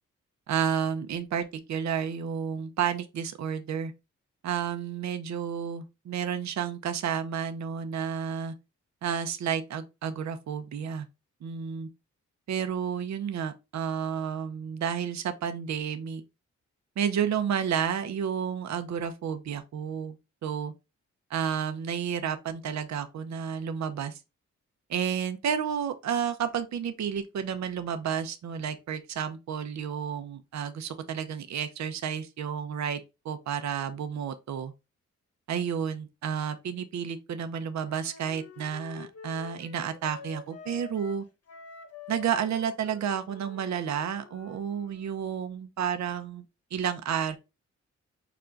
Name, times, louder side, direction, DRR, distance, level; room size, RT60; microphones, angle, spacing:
voice 1, 0.5-3.9 4.4-8.5 9.0-11.1 11.4-11.9 12.5-16.2 17.0-20.2 20.4-20.7 21.3-24.2 24.9-34.7 35.5-41.3 42.1-46.4 46.7-47.4, right 8 dB, 65° right, 0.7 m, -31 dB
Wind instrument woodwind instrument, 37.8-45.2, left 5 dB, 50° left, 1.0 m, -48 dB
5.8 x 2.2 x 3.7 m
supercardioid pair, 55°, 31 cm